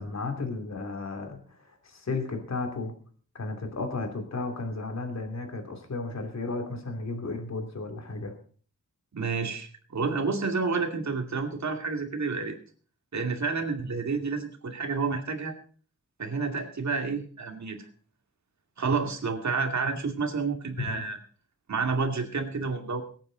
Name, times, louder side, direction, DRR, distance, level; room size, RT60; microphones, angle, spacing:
voice 1, 0.0-2.9 3.3-8.3 20.9-21.0, left 3 dB, 65° left, 4 dB, 2.9 m, -34 dB
voice 2, 9.1-12.6 13.1-15.5 16.2-17.8 18.8-21.2 21.7-23.0, right 4 dB, 70° right, 4 dB, 2.4 m, -29 dB
23.0 x 9.0 x 4.0 m, 0.43 s
wide cardioid pair, 120°, 30 cm